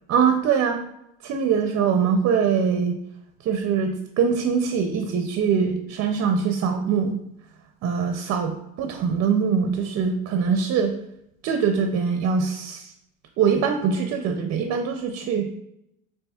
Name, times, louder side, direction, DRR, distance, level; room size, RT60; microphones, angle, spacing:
voice 1, 0.1-0.8 1.2-3.0 3.4-7.2 7.8-10.9 11.4-12.9 13.4-15.5, right 6 dB, 45° right, 5 dB, 0.5 m, -23 dB
7.0 x 2.9 x 2.3 m, 0.80 s
cardioid pair, 130°, 33 cm